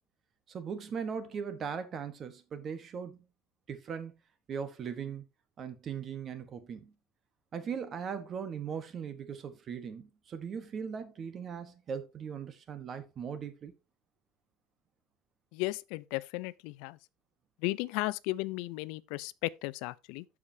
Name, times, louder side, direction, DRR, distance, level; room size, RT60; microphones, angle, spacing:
voice 1, 0.5-3.2 3.7-4.1 4.5-5.2 5.6-6.9 7.5-13.7, right 7 dB, 30° right, 1.1 m, -39 dB
voice 2, 15.5-17.0 17.6-20.3, left 20 dB, 70° left, 0.4 m, -35 dB
14.0 x 4.9 x 2.7 m
cardioid pair, 155°, 0 cm